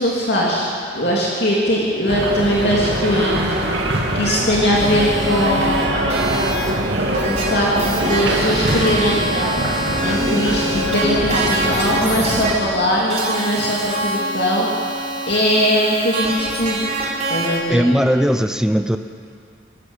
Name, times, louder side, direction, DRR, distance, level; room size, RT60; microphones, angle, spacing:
voice 1, 0.0-3.7 4.1-6.0 7.1-9.2 10.0-15.0 15.3-16.9 17.3-17.8, equal, 55° left, -4 dB, 3.0 m, -20 dB
Slam / Squeak, 1.9-2.0 2.2-9.7, right 3 dB, 80° right, 2.2 m, -32 dB
sound 1, 2.1-12.5, right 1 dB, 60° right, 2.6 m, -23 dB
sound 2, 4.7-17.6, right 1 dB, 35° right, 3.4 m, -25 dB
voice 2, 17.7-19.0, equal, 5° right, 9 dB, 0.7 m, -17 dB
25.0 x 13.5 x 8.2 m, 2.3 s
head